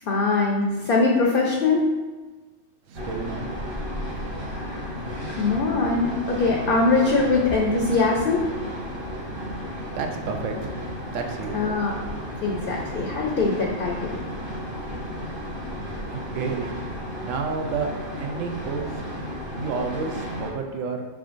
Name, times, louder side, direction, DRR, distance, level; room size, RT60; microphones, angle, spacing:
voice 1, 0.0-1.9 4.5-4.9 5.4-8.5 11.5-11.9 12.4-14.2, left 3 dB, 60° left, -1 dB, 0.6 m, -22 dB
sound 1, 2.9-20.5, equal, 25° right, 0.6 m, -33 dB
voice 2, 2.9-3.5 9.9-10.8 11.1-11.6 16.1-16.7 17.2-17.9 18.2-19.0 19.6-21.1, right 5 dB, 85° right, 4 dB, 1.0 m, -30 dB
4.9 x 3.6 x 2.5 m, 1.2 s
omnidirectional pair, 1.3 m